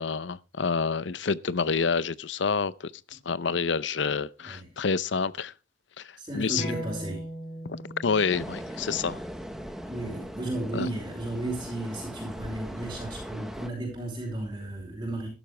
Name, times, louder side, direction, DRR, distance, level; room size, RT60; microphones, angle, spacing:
voice 1, 0.0-2.9 3.3-5.5 6.3-6.7 7.7-9.2 10.7-10.9, left 5 dB, 80° left, 0.6 m, -28 dB
voice 2, 6.2-7.2 9.9-15.3, right 2 dB, 20° right, 4.7 m, -34 dB
sound 1, 6.6-11.7, equal, 30° left, 6.8 m, -41 dB
sound 2, 8.3-13.7, equal, ahead, 1.3 m, -39 dB
14.5 x 12.0 x 3.3 m
head